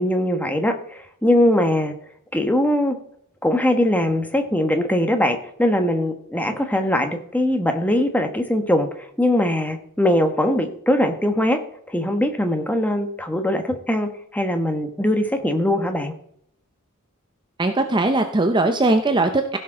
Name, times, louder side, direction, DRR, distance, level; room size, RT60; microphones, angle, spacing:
voice 1, 0.0-1.9 2.3-3.0 3.4-8.9 9.2-11.6 11.9-16.1, left 1 dB, 5° left, 6 dB, 1.2 m, -21 dB
voice 2, 17.6-19.6, right 2 dB, 20° right, 6 dB, 0.7 m, -19 dB
16.0 x 6.4 x 3.8 m, 0.68 s
head